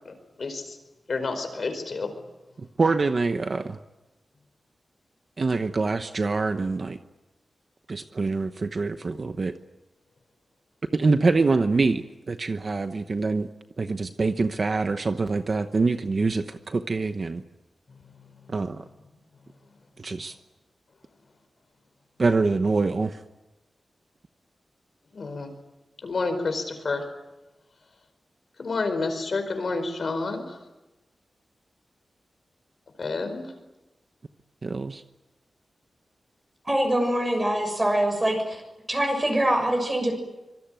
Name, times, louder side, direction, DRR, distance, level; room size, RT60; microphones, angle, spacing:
voice 1, 0.0-0.8 1.1-2.1 25.1-25.5 26.0-27.0 28.6-30.6 33.0-33.5, left 3 dB, 50° left, 7 dB, 4.8 m, -29 dB
voice 2, 2.6-3.8 5.4-7.0 7.9-9.6 10.9-13.5 13.8-17.4 18.5-18.8 20.0-20.3 22.2-23.2 34.6-35.0, right 3 dB, 40° right, 8 dB, 0.9 m, -25 dB
voice 3, 36.6-38.6 38.9-40.1, right 1 dB, 15° right, 4 dB, 6.6 m, -24 dB
25.5 x 23.5 x 9.2 m, 1.0 s
wide cardioid pair, 165°, 0 cm